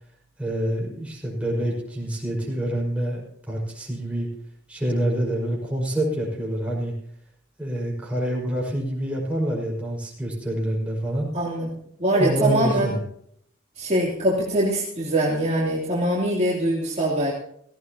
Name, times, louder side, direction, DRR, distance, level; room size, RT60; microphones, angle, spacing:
voice 1, 0.4-4.3 4.7-6.9 7.6-11.3 12.1-13.0, right 1 dB, 5° right, -3 dB, 5.2 m, -26 dB
voice 2, 11.3-11.7 12.0-12.9 13.8-17.3, right 1 dB, 35° right, -5 dB, 3.1 m, -23 dB
17.0 x 16.5 x 2.9 m, 0.66 s
head